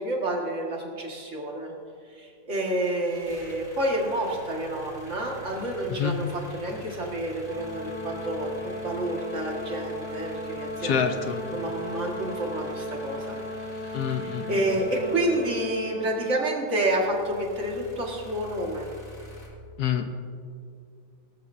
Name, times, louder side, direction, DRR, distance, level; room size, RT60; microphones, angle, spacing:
voice 1, 0.0-1.7 2.1-11.1 11.5-13.4 13.8-18.9, right 1 dB, 40° right, -1 dB, 2.2 m, -29 dB
sound 1, 2.5-16.1 16.7-19.5, left 2 dB, 45° left, 2.7 m, -46 dB
Brass instrument, 7.4-16.4, left 1 dB, 60° right, 3.2 m, -36 dB
voice 2, 10.8-11.4 13.9-14.8 19.8-20.1, left 8 dB, 60° left, 7 dB, 1.4 m, -27 dB
19.0 x 13.5 x 2.8 m, 2.3 s
omnidirectional pair, 2.0 m